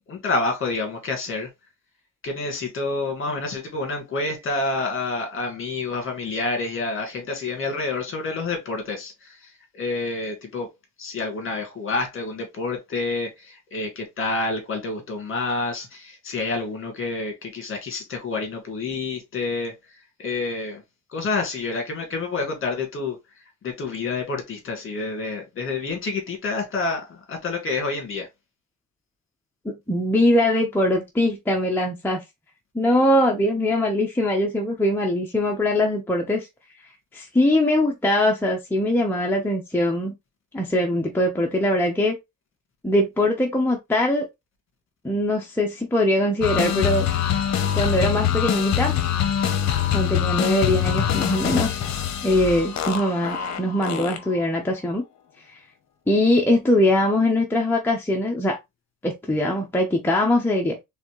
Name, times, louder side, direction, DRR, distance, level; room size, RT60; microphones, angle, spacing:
voice 1, 0.1-1.5 2.2-10.7 11.0-20.8 21.1-23.2 23.6-28.3, left 3 dB, 40° left, 1.9 m, -28 dB
voice 2, 29.6-32.2 32.7-36.5 37.1-40.1 40.5-42.2 42.8-44.3 45.0-47.1 47.7-49.0 49.9-51.8 52.2-55.0 56.1-58.6 59.0-60.8, left 1 dB, 5° left, 0.8 m, -22 dB
sound 1, 46.4-54.5, left 9 dB, 55° left, 0.9 m, -24 dB
4.1 x 3.5 x 3.1 m
cardioid pair, 145°, 33 cm